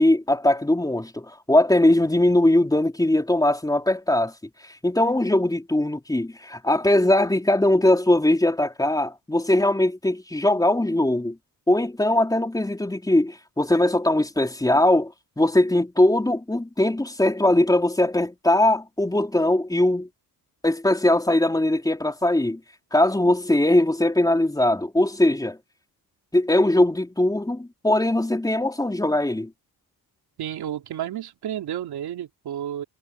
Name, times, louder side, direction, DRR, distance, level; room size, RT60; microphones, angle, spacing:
voice 1, 0.0-4.3 4.8-11.4 11.7-20.1 20.6-22.6 22.9-25.6 26.3-29.5, left 1 dB, 10° left, 4.0 m, -20 dB
voice 2, 30.4-32.8, right 10 dB, 80° right, 3.7 m, -31 dB
cardioid pair, 115°, 38 cm